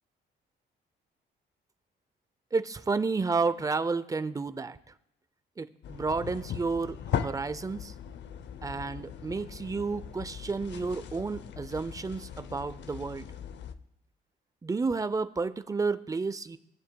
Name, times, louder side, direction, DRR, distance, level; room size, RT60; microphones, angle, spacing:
voice 1, 2.5-4.8 5.6-7.9 8.6-13.3 14.6-16.6, right 4 dB, 15° right, 13 dB, 0.5 m, -31 dB
sound 1, 5.8-13.7, left 8 dB, 65° left, 0.6 m, -39 dB
18.5 x 7.4 x 2.3 m, 0.84 s
cardioid pair, 90°, 20 cm